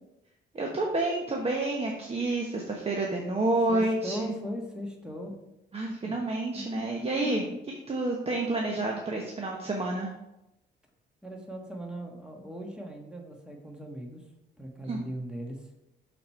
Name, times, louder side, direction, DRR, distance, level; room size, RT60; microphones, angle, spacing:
voice 1, 0.5-4.4 5.7-7.4 7.9-10.1 14.9-15.0, right 2 dB, 30° right, -1 dB, 1.0 m, -29 dB
voice 2, 3.7-5.3 6.0-6.2 6.8-7.1 11.2-14.2 14.6-15.6, equal, 5° right, 1 dB, 1.4 m, -39 dB
6.5 x 4.3 x 4.4 m, 0.90 s
cardioid pair, 90°, 20 cm